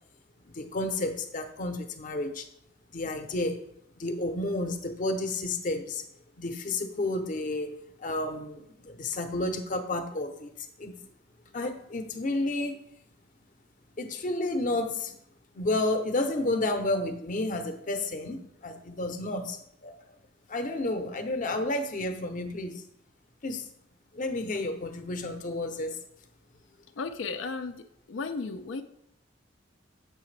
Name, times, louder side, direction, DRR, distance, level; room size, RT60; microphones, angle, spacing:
voice 1, 0.4-2.5 2.9-3.6 4.0-6.0 6.4-10.9 11.5-12.9 14.0-15.2 15.5-19.9 20.5-22.8 23.4-23.7 24.1-26.0, left 2 dB, 45° left, 7 dB, 0.7 m, -31 dB
voice 2, 27.0-28.8, left 4 dB, 90° left, 7 dB, 0.4 m, -35 dB
6.9 x 5.7 x 3.2 m, 0.74 s
head